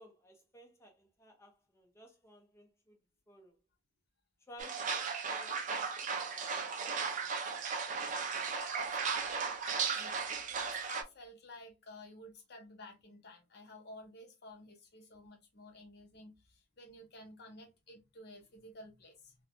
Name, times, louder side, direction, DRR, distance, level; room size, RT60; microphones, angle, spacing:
voice 1, 0.0-3.0 3.3-3.6 4.5-6.5 6.8-7.4, equal, 15° left, 0.6 m, -57 dB
sound 1, 4.6-11.0, right 5 dB, 35° right, 0.4 m, -36 dB
voice 2, 8.5-9.3 9.6-19.4, left 2 dB, 50° left, 0.7 m, -53 dB
3.0 x 2.1 x 2.5 m
head